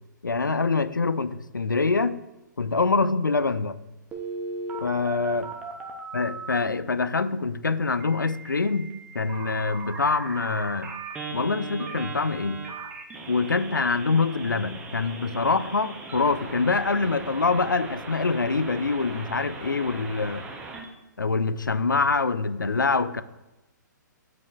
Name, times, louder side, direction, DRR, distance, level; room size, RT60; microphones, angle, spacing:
voice 1, 0.2-2.2 2.6-3.8 4.8-5.5 6.1-10.9 11.3-12.6 13.3-20.5 21.2-23.2, left 4 dB, 80° left, 14 dB, 0.4 m, -25 dB
Telephone, 4.1-6.6 8.0-20.8, right 3 dB, 10° right, 0.7 m, -38 dB
9.5 x 4.7 x 2.3 m, 1.0 s
figure-of-eight pair, 125°, 10 cm